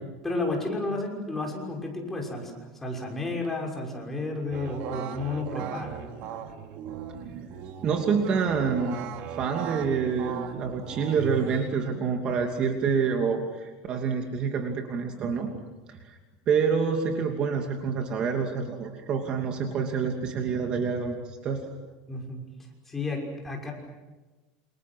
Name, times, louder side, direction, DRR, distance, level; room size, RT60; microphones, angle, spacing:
voice 1, 0.2-6.0 22.1-22.4 22.9-23.7, left 2 dB, 10° left, 0 dB, 6.0 m, -32 dB
sound 1, 4.5-12.0, right 8 dB, 55° right, 2.9 m, -38 dB
voice 2, 7.8-9.0 9.3-15.6 15.9-16.2 16.5-21.7, right 6 dB, 35° right, 3 dB, 2.8 m, -27 dB
28.5 x 28.0 x 6.3 m, 1.2 s
supercardioid pair, 155°, 3 cm